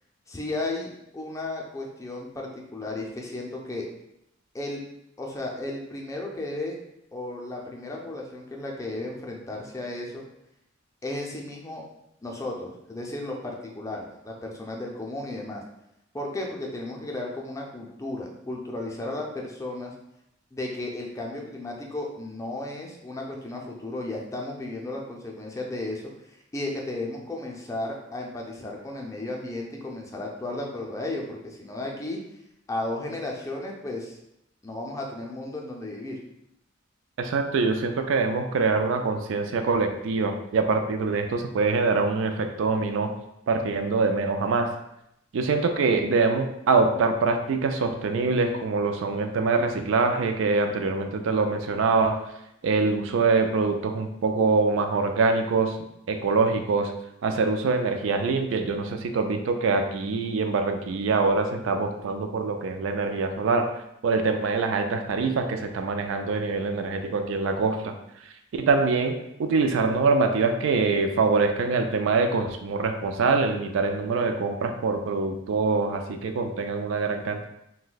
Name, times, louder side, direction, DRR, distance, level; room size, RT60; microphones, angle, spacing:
voice 1, 0.3-3.9 4.5-4.8 5.2-6.8 7.1-10.2 11.0-11.8 12.2-15.6 16.1-19.9 20.5-32.2 32.7-34.2 34.6-36.2, left 2 dB, 15° left, -1 dB, 0.4 m, -34 dB
voice 2, 37.2-43.1 43.5-44.7 45.3-52.3 52.6-55.8 56.1-56.9 57.2-67.9 68.5-77.5, right 4 dB, 70° right, 6 dB, 0.3 m, -24 dB
2.6 x 2.2 x 3.9 m, 0.80 s
head